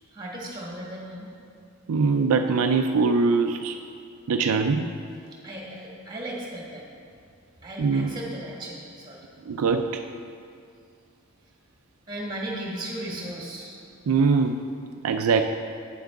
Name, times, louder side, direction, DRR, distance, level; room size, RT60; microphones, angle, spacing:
voice 1, 0.1-1.3 5.4-6.8 7.6-9.3 12.1-13.8, right 1 dB, 20° right, -3 dB, 1.7 m, -36 dB
voice 2, 1.9-3.7 4.3-4.9 7.8-8.2 9.5-10.0 14.1-14.6 15.0-15.4, right 4 dB, 80° right, 6 dB, 0.4 m, -22 dB
9.4 x 7.5 x 3.6 m, 2.3 s
head